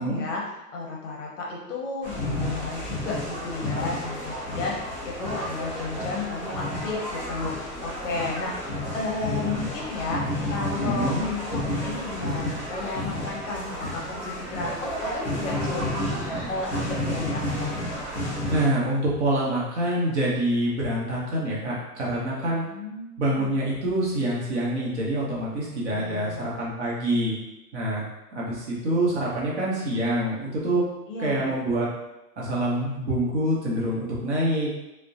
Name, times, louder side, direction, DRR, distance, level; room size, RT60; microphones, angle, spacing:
voice 1, 0.0-17.9 22.6-23.5 25.9-26.6 31.1-31.6, left 3 dB, 50° left, -2 dB, 0.7 m, -33 dB
sound 1, 2.0-18.7, left 1 dB, 10° left, 0.5 m, -31 dB
voice 2, 10.8-11.2 18.5-22.7 23.2-27.4 27.7-28.0 28.3-30.8 31.2-31.9 32.4-34.7, right 1 dB, 45° right, -5 dB, 0.8 m, -26 dB
2.5 x 2.1 x 2.4 m, 0.93 s
hypercardioid pair, 150°, 48 cm